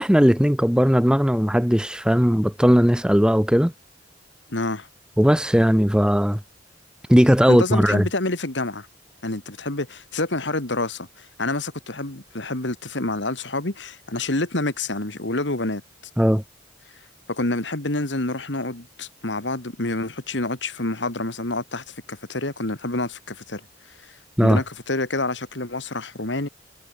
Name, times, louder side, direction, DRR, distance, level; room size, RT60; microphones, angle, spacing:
voice 1, 0.0-3.7 5.2-6.4 7.1-8.0 16.2-16.4 24.4-24.6, equal, 5° right, 1.3 m, -18 dB
voice 2, 4.5-4.9 7.5-8.9 9.2-15.8 17.3-23.6 24.0-26.5, left 2 dB, 75° left, 2.7 m, -28 dB
head